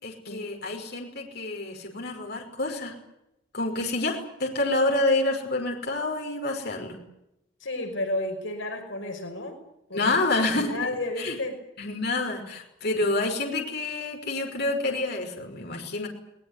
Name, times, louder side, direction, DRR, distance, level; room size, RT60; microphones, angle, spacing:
voice 1, 0.0-2.9 3.5-7.0 9.9-10.7 11.2-11.4 11.8-16.1, left 2 dB, 55° left, 2 dB, 5.6 m, -28 dB
voice 2, 7.6-9.6 9.9-10.1 10.4-11.6, left 2 dB, 70° left, 4 dB, 5.5 m, -32 dB
22.5 x 20.0 x 9.9 m, 0.85 s
head